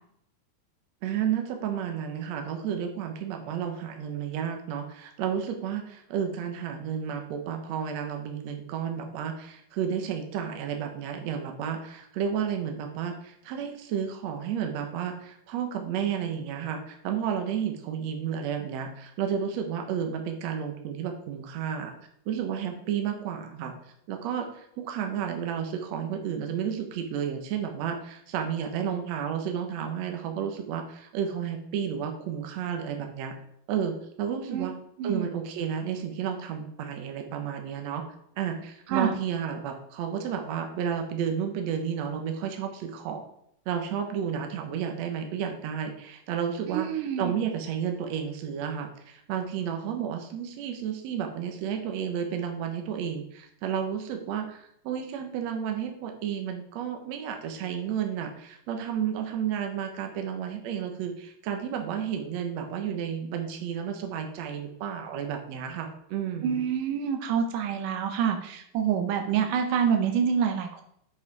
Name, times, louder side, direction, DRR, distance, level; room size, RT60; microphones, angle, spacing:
voice 1, 1.0-21.9 22.3-23.7 24.1-33.3 33.7-34.7 35.0-38.0 38.4-43.2 43.7-66.6, right 8 dB, 65° right, 4 dB, 2.0 m, -32 dB
voice 2, 46.7-47.3 66.4-70.8, right 7 dB, 85° right, 4 dB, 2.4 m, -27 dB
7.5 x 5.0 x 4.7 m, 0.71 s
omnidirectional pair, 3.6 m